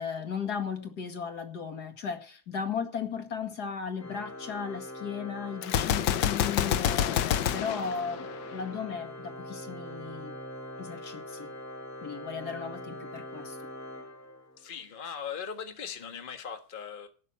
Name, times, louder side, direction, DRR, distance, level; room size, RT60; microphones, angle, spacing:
voice 1, 0.0-10.4 10.8-11.5 12.0-13.6, left 6 dB, 65° left, 2.4 m, -36 dB
Organ, 4.0-14.8, left 1 dB, 10° left, 2.2 m, -42 dB
Gunshot gunfire, 5.6-8.7, left 10 dB, 80° left, 1.4 m, -28 dB
voice 2, 14.6-17.1, left 7 dB, 30° left, 1.6 m, -39 dB
12.0 x 7.4 x 7.3 m
omnidirectional pair, 1.9 m